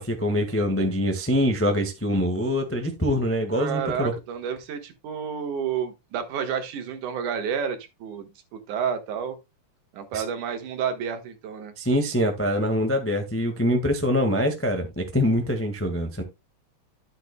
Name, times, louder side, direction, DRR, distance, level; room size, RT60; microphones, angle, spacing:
voice 1, 0.0-4.1 10.1-10.2 11.8-16.2, equal, 20° left, 0.3 m, -24 dB
voice 2, 3.5-9.4 9.9-11.7, right 7 dB, 85° right, 2.9 m, -30 dB
12.5 x 7.8 x 2.2 m
omnidirectional pair, 3.5 m